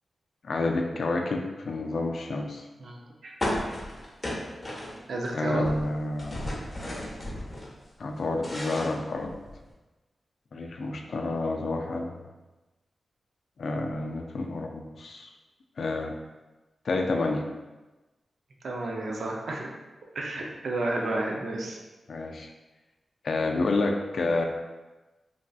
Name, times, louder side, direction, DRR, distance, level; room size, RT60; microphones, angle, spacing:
voice 1, 0.4-2.6 5.3-6.5 8.0-9.4 10.5-12.2 13.6-15.3 15.8-16.1 16.9-17.5 22.1-22.5 23.2-24.4, left 2 dB, 70° left, 2 dB, 0.3 m, -29 dB
voice 2, 2.8-3.3 5.1-5.7 18.6-19.7 20.1-21.8, right 2 dB, 75° right, 0 dB, 0.5 m, -31 dB
sound 1, 3.4-5.3 5.5-7.7 8.1-9.7, left 1 dB, 30° left, 0.9 m, -34 dB
3.3 x 2.5 x 2.3 m, 1.1 s
cardioid pair, 55°, 0 cm